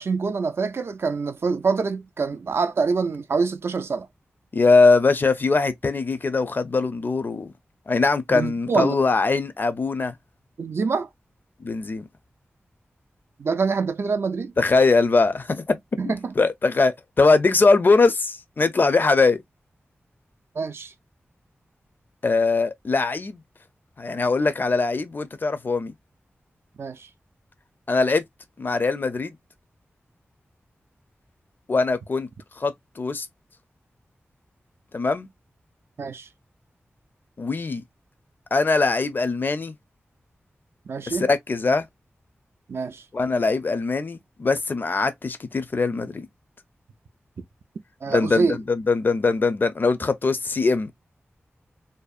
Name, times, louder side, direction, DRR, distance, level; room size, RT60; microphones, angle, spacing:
voice 1, 0.0-4.1 8.3-9.0 10.6-11.1 13.4-14.5 16.0-16.3 20.6-20.9 26.8-27.1 36.0-36.3 40.9-41.3 42.7-43.0 47.4-47.5 48.0-48.6, right 4 dB, 65° right, 0.4 m, -25 dB
voice 2, 4.5-7.5 7.9-10.1 11.6-12.1 14.6-15.8 16.0-19.4 22.2-23.4 24.0-25.9 27.9-28.2 28.6-29.3 31.7-32.3 32.6-33.3 34.9-35.3 37.4-37.8 38.5-39.7 41.1-41.9 43.1-46.3 48.1-50.9, left 3 dB, 45° left, 0.4 m, -21 dB
2.6 x 2.0 x 2.3 m
wide cardioid pair, 90°, 5 cm